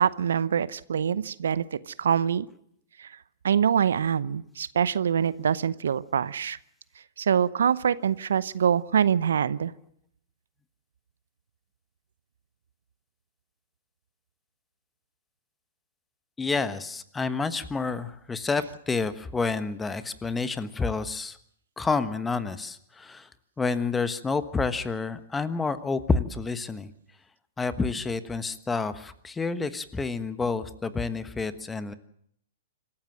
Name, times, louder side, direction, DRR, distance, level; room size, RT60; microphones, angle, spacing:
voice 1, 0.0-2.5 3.0-3.1 3.4-6.6 7.2-9.7 18.6-18.7, right 8 dB, 70° right, 18 dB, 0.8 m, -25 dB
voice 2, 16.4-21.4 21.8-23.3 23.6-26.9 27.6-31.9, left 4 dB, 10° left, 12 dB, 1.3 m, -29 dB
26.0 x 14.5 x 7.5 m, 0.70 s
figure-of-eight pair, 115°, 0 cm